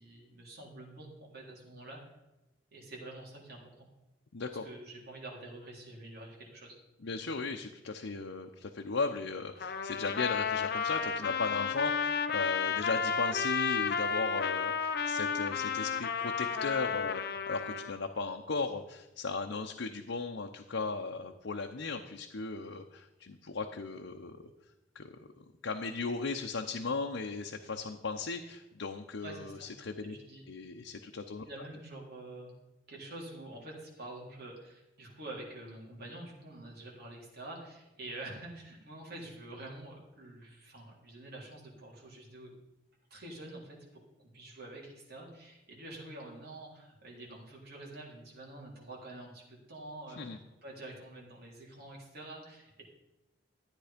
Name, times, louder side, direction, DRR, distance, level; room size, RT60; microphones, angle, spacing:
voice 1, 0.0-2.1 2.7-3.9 4.6-6.8 29.2-29.7 30.1-30.4 31.4-32.5 32.9-42.5 43.1-52.8, right 2 dB, 55° right, -2 dB, 3.6 m, -47 dB
voice 2, 4.3-4.6 7.0-24.4 24.9-30.1 30.5-31.7 50.2-50.4, left 4 dB, 90° left, 3 dB, 0.8 m, -37 dB
Trumpet, 9.6-17.9, left 6 dB, 55° left, 0.8 m, -32 dB
13.5 x 9.0 x 5.1 m, 0.99 s
head